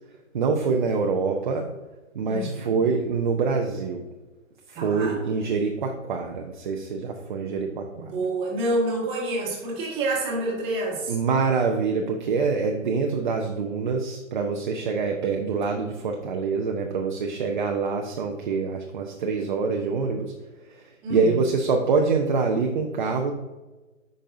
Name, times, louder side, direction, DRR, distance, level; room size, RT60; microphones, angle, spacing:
voice 1, 0.3-1.7 2.1-4.0 4.7-7.9 11.1-20.3 21.1-23.3, right 4 dB, 40° right, 2 dB, 0.6 m, -25 dB
voice 2, 2.3-2.9 4.7-5.2 7.9-11.2 21.0-21.4, right 1 dB, 15° right, -4 dB, 1.5 m, -28 dB
8.7 x 5.3 x 2.6 m, 1.2 s
hypercardioid pair, 160°, 38 cm